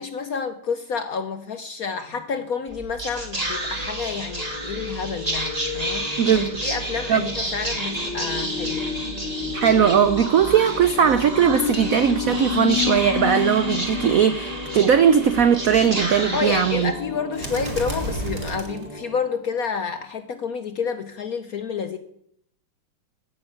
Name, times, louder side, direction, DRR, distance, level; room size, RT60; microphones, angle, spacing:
voice 1, 0.0-9.0 16.3-22.0, left 5 dB, 65° left, 9 dB, 0.9 m, -29 dB
sound 1, 2.0-2.2 3.3-19.3 19.7-19.8 20.0-20.1, left 9 dB, 85° left, 2.4 m, -33 dB
Whispering, 2.7-19.3, right 1 dB, 15° right, 2.2 m, -30 dB
voice 2, 6.2-6.5 7.1-7.3 9.5-16.9, right 8 dB, 90° right, 11 dB, 0.7 m, -19 dB
14.5 x 7.1 x 8.8 m, 0.71 s
omnidirectional pair, 2.4 m